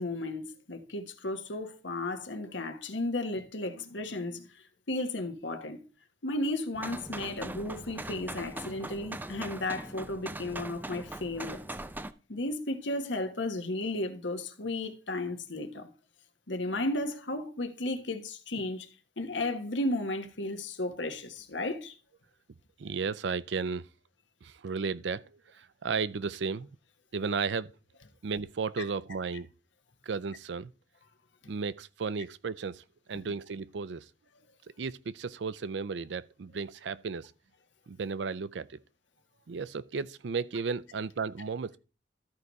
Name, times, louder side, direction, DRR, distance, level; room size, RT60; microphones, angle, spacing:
voice 1, 0.0-4.5 4.9-5.8 6.2-11.6 12.3-15.9 16.5-18.9 19.2-21.9, left 2 dB, 85° left, 1.3 m, -34 dB
sound 1, 6.7-12.1, right 1 dB, 10° right, 0.5 m, -41 dB
voice 2, 22.8-23.8 24.4-26.7 27.1-27.7 28.2-29.5 30.0-30.7 31.5-32.8 33.1-34.1 34.8-37.3 37.9-38.8 39.5-41.8, right 5 dB, 70° right, 0.5 m, -34 dB
13.0 x 4.8 x 4.0 m
head